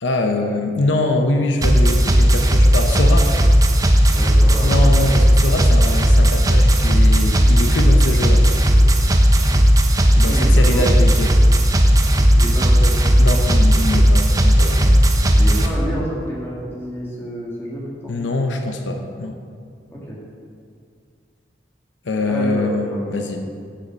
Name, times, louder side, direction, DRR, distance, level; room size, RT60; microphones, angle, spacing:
voice 1, 0.0-3.3 4.6-8.5 10.2-11.4 13.2-15.4 18.1-19.4 22.0-23.4, left 2 dB, 90° left, 4 dB, 0.8 m, -23 dB
sound 1, 1.6-15.7, equal, 20° right, 0.6 m, -14 dB
voice 2, 4.1-4.8 10.1-11.1 12.3-13.4 15.4-18.1 19.9-20.2 22.3-23.4, equal, 15° left, -6 dB, 2.1 m, -29 dB
7.6 x 6.8 x 6.2 m, 2.2 s
head